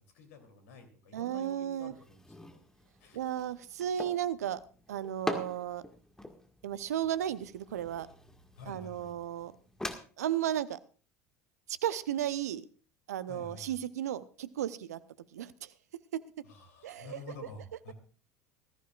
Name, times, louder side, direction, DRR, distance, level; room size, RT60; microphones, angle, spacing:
voice 1, 0.1-2.6 3.0-3.2 8.6-9.1 13.3-13.8 16.4-17.9, left 3 dB, 70° left, 5 dB, 3.1 m, -49 dB
voice 2, 1.1-1.9 3.1-4.6 4.9-5.8 6.6-8.1 8.7-9.5 10.2-10.8 11.7-12.6 13.1-15.0 15.3-15.7 16.1-16.2 16.8-17.2, right 11 dB, 75° right, 16 dB, 0.7 m, -34 dB
sound 1, 1.8-10.0, left 1 dB, 5° left, 1.8 m, -44 dB
19.5 x 14.0 x 2.4 m, 0.39 s
figure-of-eight pair, 70°, 9 cm